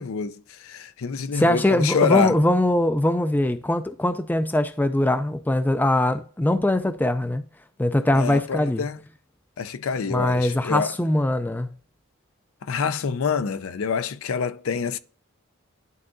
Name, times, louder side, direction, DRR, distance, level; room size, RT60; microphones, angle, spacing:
voice 1, 0.0-2.4 8.1-9.0 9.6-10.9 12.6-15.0, left 5 dB, 70° left, 0.5 m, -26 dB
voice 2, 1.3-7.4 7.8-8.9 10.1-11.7, left 1 dB, 10° left, 0.3 m, -22 dB
11.0 x 3.8 x 2.5 m
head